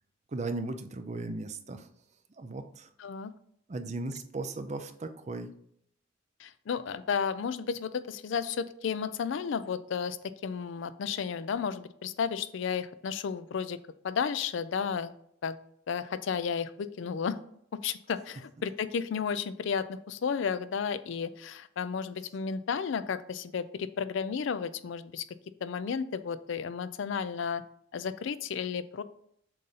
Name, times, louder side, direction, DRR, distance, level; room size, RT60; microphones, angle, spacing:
voice 1, 0.3-1.9 2.4-2.9 3.7-5.5, right 2 dB, 35° right, 7 dB, 0.5 m, -36 dB
voice 2, 3.0-3.3 6.4-10.2 10.4-13.8 14.0-15.1 15.4-15.6 15.9-17.4 17.8-25.2 25.6-27.6 27.9-29.0, left 6 dB, 60° left, 14 dB, 0.4 m, -33 dB
7.6 x 2.6 x 5.5 m, 0.68 s
head